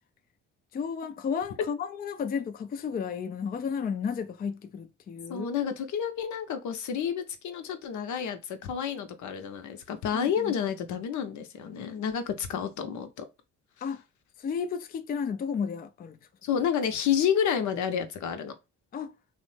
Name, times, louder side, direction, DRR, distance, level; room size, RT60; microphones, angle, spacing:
voice 1, 0.7-5.5 10.1-10.5 13.8-14.0 14.4-16.2 18.9-19.1, left 6 dB, 30° left, 0.4 m, -33 dB
voice 2, 5.3-13.2 16.4-18.5, left 8 dB, 75° left, 0.7 m, -30 dB
3.1 x 2.1 x 3.1 m
cardioid pair, 90°, 30 cm